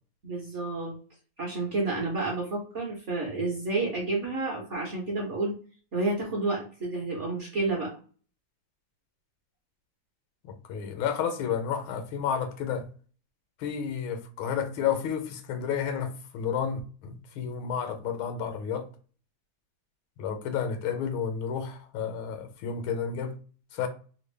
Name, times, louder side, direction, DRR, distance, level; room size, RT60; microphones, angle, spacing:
voice 1, 0.2-0.9 1.4-5.6 5.9-7.9, right 2 dB, 50° right, 0.9 m, -30 dB
voice 2, 10.4-12.9 13.6-18.9 20.2-23.3 23.7-23.9, left 7 dB, 85° left, 1.5 m, -31 dB
3.5 x 2.2 x 3.2 m
omnidirectional pair, 2.2 m